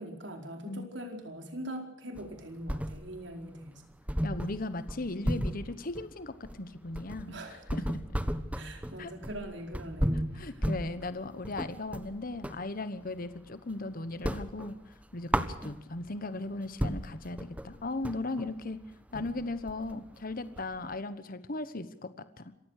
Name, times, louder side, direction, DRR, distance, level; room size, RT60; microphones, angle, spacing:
voice 1, 0.0-3.8 7.3-7.6 8.5-10.6, right 1 dB, 70° right, 4 dB, 4.6 m, -42 dB
sound 1, 2.1-3.3 3.6-3.7 4.1-12.7 13.0-13.8 14.1-16.1 16.5-16.6 16.8-20.9, equal, 10° right, 1.3 m, -34 dB
voice 2, 4.2-8.0 9.0-9.1 10.1-18.8 19.1-22.5, left 2 dB, 50° left, 13 dB, 1.2 m, -37 dB
27.0 x 15.5 x 6.6 m, 0.88 s
head